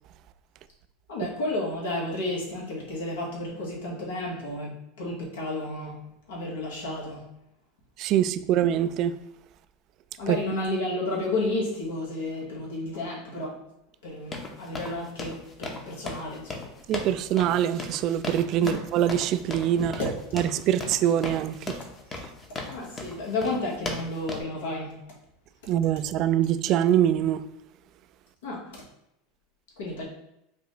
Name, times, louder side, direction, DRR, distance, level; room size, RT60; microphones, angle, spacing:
voice 1, 1.1-7.2 10.2-13.5 14.0-16.7 18.6-18.8 20.0-20.1 22.7-25.0 28.4-28.8 29.8-30.1, left 2 dB, 85° left, 1.4 m, -32 dB
voice 2, 8.0-9.2 10.3-10.4 16.9-19.9 20.3-21.7 25.7-27.4, right 10 dB, 50° right, 0.3 m, -24 dB
sound 1, 14.3-24.4, left 3 dB, 25° left, 0.8 m, -37 dB
4.9 x 2.4 x 3.1 m
hypercardioid pair, 105°, 0 cm